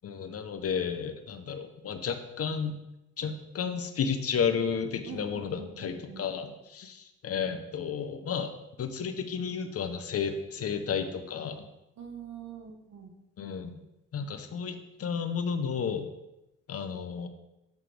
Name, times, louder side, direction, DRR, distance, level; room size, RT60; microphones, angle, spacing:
voice 1, 0.0-2.8 3.2-8.5 8.8-11.6 13.4-13.8 14.1-16.1 16.7-17.3, left 6 dB, 50° left, 8 dB, 0.9 m, -32 dB
voice 2, 5.0-6.3 12.0-13.1, right 7 dB, 60° right, 3 dB, 1.5 m, -44 dB
7.6 x 7.4 x 3.4 m, 0.90 s
cardioid pair, 90°, 30 cm